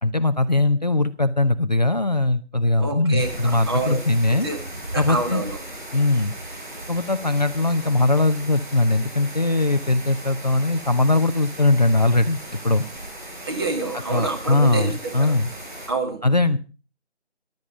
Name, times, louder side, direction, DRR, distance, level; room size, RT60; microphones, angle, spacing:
voice 1, 0.0-4.5 4.9-5.4 5.9-6.3 6.9-12.8 14.1-15.5 16.2-16.6, left 2 dB, 40° left, 9 dB, 0.7 m, -20 dB
voice 2, 2.8-4.0 4.3-4.6 4.9-5.6 13.4-15.4 15.9-16.2, right 3 dB, 20° right, 4 dB, 2.2 m, -27 dB
sound 1, 3.2-15.9, right 1 dB, 45° right, 7.2 m, -37 dB
14.0 x 12.0 x 4.9 m, 0.35 s
figure-of-eight pair, 170°, 34 cm